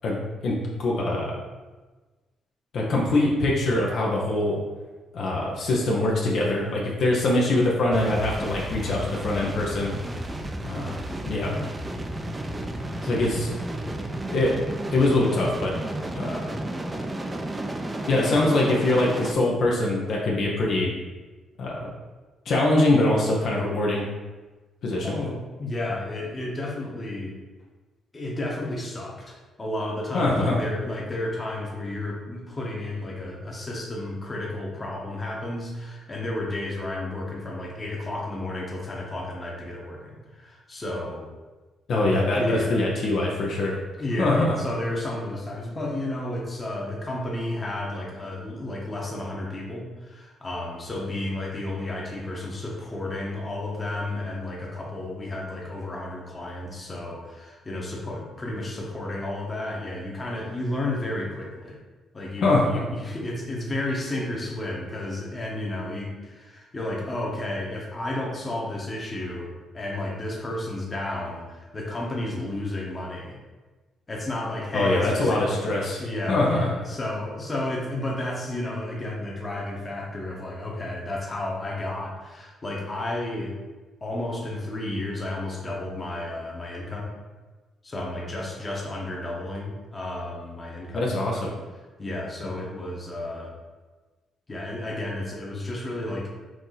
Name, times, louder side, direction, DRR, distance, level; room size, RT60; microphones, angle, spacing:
voice 1, 0.4-1.4 2.7-4.6 5.1-9.9 10.6-11.6 13.0-13.5 14.3-14.6 14.9-15.7 16.1-16.4 18.1-20.9 21.6-21.9 22.5-24.1 24.8-25.2 30.1-30.6 41.9-43.8 44.2-44.5 62.4-62.8 74.7-76.0 76.3-76.7 90.9-91.5, left 2 dB, 65° left, -3 dB, 0.8 m, -23 dB
sound 1, 7.9-19.3, right 1 dB, 15° right, 0.5 m, -32 dB
voice 2, 25.0-27.3 28.1-41.3 42.1-42.8 44.0-61.8 62.1-73.4 74.1-83.5 84.0-87.1 87.8-91.1 92.0-93.5 94.5-96.3, left 1 dB, 25° left, -2 dB, 1.1 m, -32 dB
4.6 x 2.7 x 3.9 m, 1.3 s
cardioid pair, 90°, 0 cm